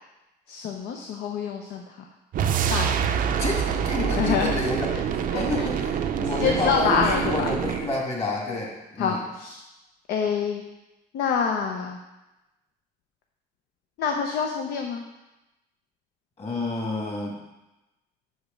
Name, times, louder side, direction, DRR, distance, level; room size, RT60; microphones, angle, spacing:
voice 1, 0.5-2.1 2.7-3.0 4.2-4.5 4.9-5.0 5.3-5.7 6.2-7.5 9.0-9.6 10.1-10.6 11.1-12.0 14.0-15.0, left 6 dB, 75° left, 2 dB, 0.7 m, -26 dB
sound 1, 2.3-8.0, right 8 dB, 55° right, 0.5 m, -26 dB
voice 2, 3.3-4.9 5.1-9.2 16.4-17.4, left 2 dB, 35° left, -1 dB, 2.1 m, -29 dB
6.0 x 5.1 x 5.2 m, 0.99 s
cardioid pair, 110°, 17 cm